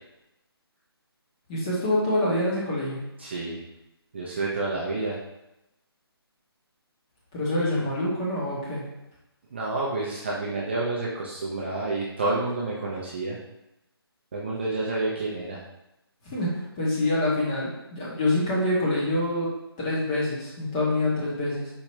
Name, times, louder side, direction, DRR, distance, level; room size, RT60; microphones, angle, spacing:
voice 1, 1.5-3.0 7.3-8.8 16.2-19.5 19.8-21.7, left 1 dB, 15° left, -6 dB, 0.8 m, -26 dB
voice 2, 3.2-3.6 4.1-5.2 9.5-13.4 14.3-15.6, right 2 dB, 25° right, -5 dB, 0.4 m, -29 dB
4.4 x 2.3 x 3.0 m, 0.90 s
hypercardioid pair, 165°, 13 cm